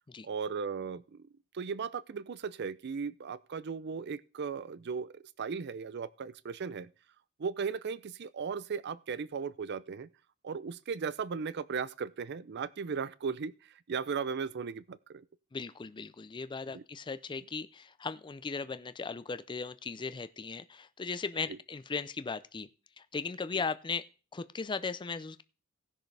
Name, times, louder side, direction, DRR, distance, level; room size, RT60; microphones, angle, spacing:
voice 1, 0.2-1.3 1.5-6.9 7.4-10.1 10.4-15.2 16.7-16.8 21.5-21.6, right 5 dB, 55° right, 0.5 m, -37 dB
voice 2, 15.5-22.7 23.0-24.1 24.3-25.4, left 4 dB, 20° left, 0.4 m, -37 dB
18.0 x 6.4 x 3.3 m
head